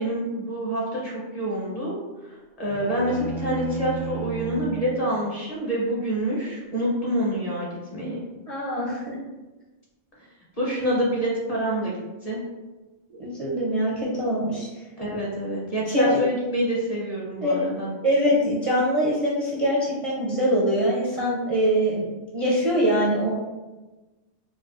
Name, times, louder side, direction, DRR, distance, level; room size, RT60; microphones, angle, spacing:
voice 1, 0.0-1.9 2.6-8.2 10.6-12.4 15.0-17.9, equal, 35° left, -5 dB, 0.8 m, -27 dB
sound 1, 2.7-4.9, right 6 dB, 90° left, 2.0 m, -33 dB
voice 2, 8.5-9.2 13.1-14.7 15.9-16.2 17.4-17.7 18.0-22.1 22.3-23.3, equal, 40° right, -6 dB, 0.5 m, -23 dB
4.6 x 2.3 x 2.4 m, 1.1 s
omnidirectional pair, 1.2 m